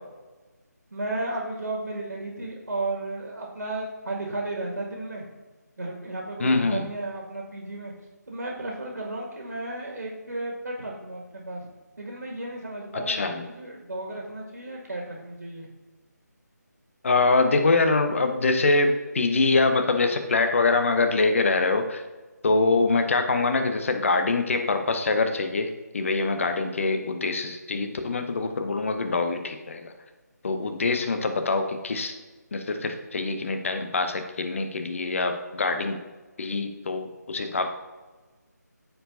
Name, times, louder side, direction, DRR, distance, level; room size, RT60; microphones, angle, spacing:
voice 1, 0.9-5.2 5.8-7.9 8.3-11.7 12.0-15.7, right 2 dB, 70° right, -2 dB, 2.0 m, -34 dB
voice 2, 6.4-6.9 12.9-13.4 17.0-22.0 22.4-29.9 30.4-32.1 32.5-36.0 36.4-37.7, left 3 dB, 45° left, 6 dB, 0.8 m, -24 dB
13.5 x 4.7 x 2.7 m, 1.2 s
figure-of-eight pair, 155°, 10 cm